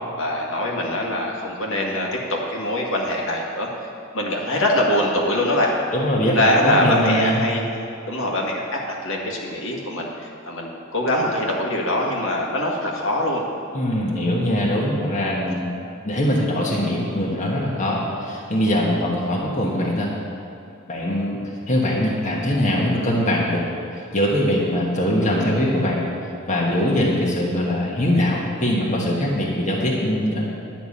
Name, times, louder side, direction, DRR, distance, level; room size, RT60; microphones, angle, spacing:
voice 1, 0.2-3.7 4.1-5.7 6.2-7.7 8.1-13.4, left 1 dB, 65° left, -2 dB, 1.8 m, -23 dB
voice 2, 5.9-6.4 6.6-7.4 13.7-15.7 16.0-20.1 20.9-21.4 21.7-23.6 24.1-26.1 26.5-30.5, equal, 35° left, -3 dB, 1.4 m, -22 dB
11.0 x 6.0 x 8.5 m, 2.5 s
head